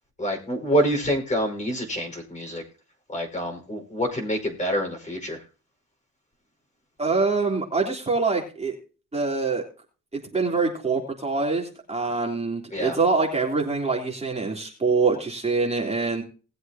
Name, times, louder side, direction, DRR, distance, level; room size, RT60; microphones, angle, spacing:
voice 1, 0.2-2.6 3.1-5.4 12.7-13.0, equal, 25° left, 3 dB, 5.2 m, -26 dB
voice 2, 7.0-8.8 9.1-9.6 10.1-16.2, right 4 dB, 20° right, -1 dB, 3.4 m, -25 dB
19.5 x 7.9 x 2.9 m, 0.36 s
cardioid pair, 90°, 30 cm